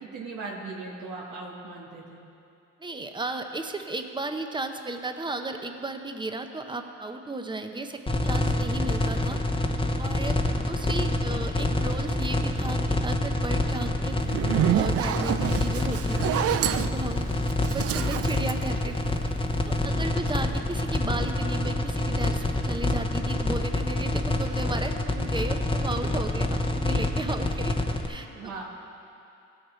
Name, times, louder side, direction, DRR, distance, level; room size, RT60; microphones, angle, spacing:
voice 1, 0.1-2.2 19.8-19.9 28.3-28.6, right 3 dB, 85° right, -4 dB, 1.6 m, -38 dB
voice 2, 2.8-9.4 10.0-16.4 16.7-17.3 17.7-19.0 19.2-19.3 19.6-27.8 28.1-28.3, right 2 dB, 15° right, 6 dB, 0.8 m, -34 dB
sound 1, 8.1-28.1, left 2 dB, 20° left, 0.8 m, -26 dB
Zipper (clothing), 14.2-19.5, right 11 dB, 50° right, 0.4 m, -28 dB
16.5 x 6.6 x 4.4 m, 2.6 s
cardioid pair, 90°, 30 cm